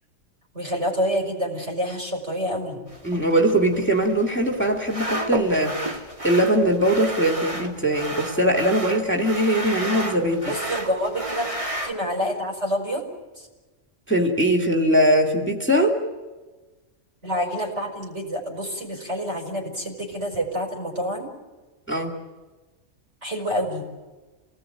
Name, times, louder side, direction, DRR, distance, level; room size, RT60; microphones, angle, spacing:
voice 1, 0.5-2.8 10.5-13.0 13.4-13.5 17.2-21.3 23.2-23.9, equal, 65° right, 1 dB, 5.4 m, -27 dB
sound 1, 2.9-11.9, right 1 dB, 25° right, 2.4 m, -32 dB
voice 2, 3.0-10.5 14.1-15.9 21.9-22.1, right 1 dB, 10° left, 2 dB, 2.3 m, -21 dB
28.0 x 19.0 x 9.1 m, 1.3 s
omnidirectional pair, 1.3 m